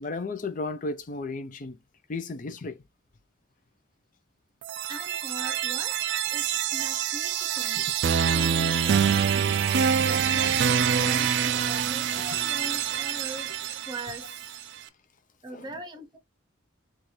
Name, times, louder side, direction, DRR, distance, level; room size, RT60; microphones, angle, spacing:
voice 1, 0.0-1.8 2.1-2.8 7.8-7.9 12.3-12.4 15.5-15.7, left 3 dB, 40° left, 0.5 m, -34 dB
sound 1, 4.6-14.6, right 8 dB, 60° right, 0.3 m, -26 dB
voice 2, 4.8-14.5 15.4-16.2, right 1 dB, 20° right, 0.8 m, -41 dB
4.2 x 2.4 x 3.2 m
head